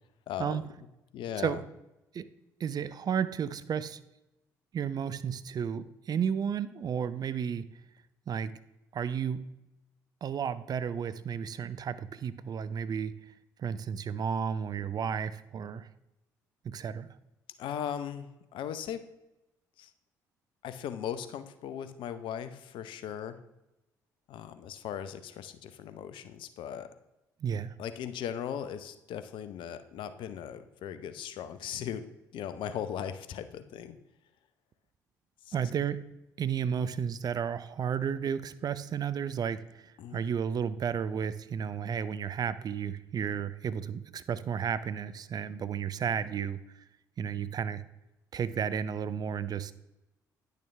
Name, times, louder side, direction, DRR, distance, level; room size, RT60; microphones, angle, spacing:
voice 1, 0.3-0.7 1.1-1.6 17.6-19.0 19.8-19.9 20.6-23.4 24.3-26.9 27.8-32.1 32.3-34.0 35.5-35.6 40.0-40.3, left 9 dB, 60° left, 11 dB, 0.7 m, -38 dB
voice 2, 2.6-4.0 4.7-7.7 8.3-8.5 8.9-9.4 10.2-13.1 13.6-15.9 16.6-17.1 27.4-27.7 35.5-36.0 36.4-46.6 47.2-47.8 48.3-49.7, right 7 dB, 45° right, 14 dB, 0.5 m, -32 dB
10.0 x 6.6 x 3.2 m, 0.94 s
hypercardioid pair, 50°, 9 cm